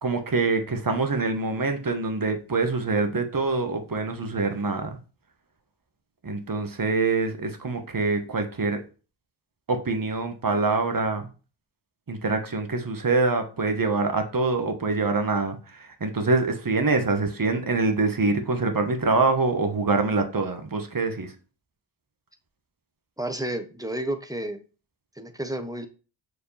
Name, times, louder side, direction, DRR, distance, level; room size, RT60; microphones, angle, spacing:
voice 1, 0.0-5.0 6.2-8.8 9.7-11.3 12.1-21.3, right 3 dB, 45° right, 6 dB, 1.4 m, -25 dB
voice 2, 23.2-24.6 25.2-25.9, right 1 dB, 5° right, 8 dB, 1.0 m, -31 dB
6.4 x 4.8 x 3.3 m, 0.35 s
cardioid pair, 50°, 48 cm